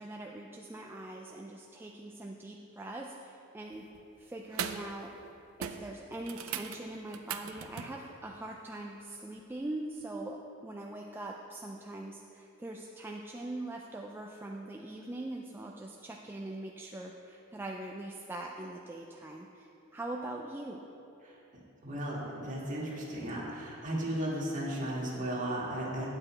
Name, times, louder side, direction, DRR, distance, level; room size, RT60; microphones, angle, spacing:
voice 1, 0.0-3.9 4.2-5.1 5.6-20.8, right 1 dB, 10° right, 0 dB, 0.3 m, -42 dB
sound 1, 3.7-4.0 4.5-4.9 5.2-5.3 5.6-8.0 10.0-10.1, right 8 dB, 85° right, 0.5 m, -40 dB
voice 2, 21.8-26.1, right 1 dB, 40° right, -5 dB, 1.9 m, -35 dB
8.9 x 7.9 x 4.3 m, 3.0 s
head